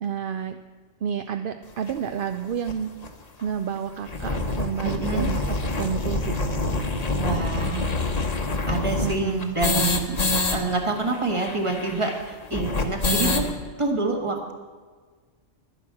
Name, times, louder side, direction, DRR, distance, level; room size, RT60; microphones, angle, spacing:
voice 1, 0.0-0.6 1.0-2.9 3.4-6.3 9.0-9.6, right 8 dB, 60° right, 9 dB, 0.6 m, -30 dB
sound 1, 1.9-2.0 2.7-2.8 3.0-3.1 3.4-3.5 3.9-10.6 10.8-10.9 11.1-13.5, left 2 dB, 35° left, 1.1 m, -26 dB
voice 2, 4.8-5.3 7.1-7.9 8.7-10.2 10.5-13.5 13.8-14.5, right 3 dB, 25° right, 3 dB, 1.8 m, -27 dB
11.5 x 10.0 x 7.6 m, 1.5 s
omnidirectional pair, 1.3 m